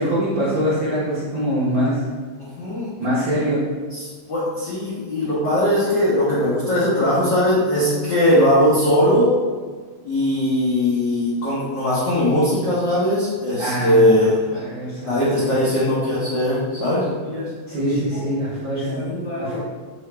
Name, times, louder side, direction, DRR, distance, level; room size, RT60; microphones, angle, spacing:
voice 1, 0.0-2.0 3.0-3.6 13.6-15.1 15.4-15.5 15.9-16.0 17.7-19.0 19.4-19.6, equal, 80° right, -9 dB, 1.0 m, -23 dB
voice 2, 2.4-2.9 3.9-9.3 10.0-14.6 15.0-17.8 18.1-18.2 18.7-19.6, left 1 dB, 75° left, -10 dB, 1.0 m, -20 dB
4.6 x 2.9 x 3.2 m, 1.5 s
omnidirectional pair, 3.4 m